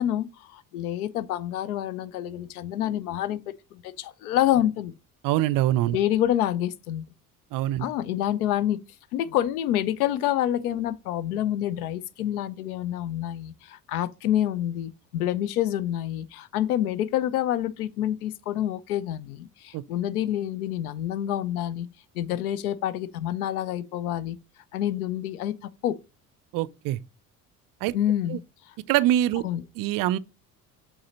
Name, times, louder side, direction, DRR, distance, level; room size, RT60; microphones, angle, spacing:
voice 1, 0.0-3.4 3.7-4.9 5.9-7.1 7.8-8.8 9.1-21.9 22.1-24.4 24.7-26.0 27.9-28.4 29.4-29.6, left 12 dB, 70° left, 0.6 m, -27 dB
voice 2, 5.2-6.0 7.5-7.9 19.7-19.8 26.5-27.0 27.8-27.9 28.3-28.4 28.9-29.4 29.8-30.2, right 14 dB, 45° right, 0.5 m, -24 dB
7.6 x 3.9 x 4.0 m
figure-of-eight pair, 55°, 46 cm